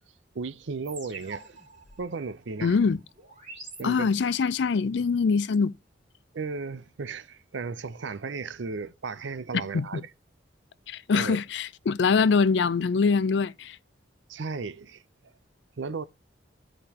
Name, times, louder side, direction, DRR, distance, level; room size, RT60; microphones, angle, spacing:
voice 1, 0.3-1.6 2.0-2.8 3.8-4.1 6.3-10.0 11.1-11.4 14.3-15.0 15.8-16.0, right 4 dB, 90° right, 0.6 m, -35 dB
sound 1, 0.8-4.5, right 3 dB, 40° right, 4.2 m, -47 dB
voice 2, 2.6-3.0 3.8-5.7 9.7-10.0 10.9-13.8, left 5 dB, 70° left, 0.4 m, -24 dB
15.0 x 5.1 x 2.9 m
head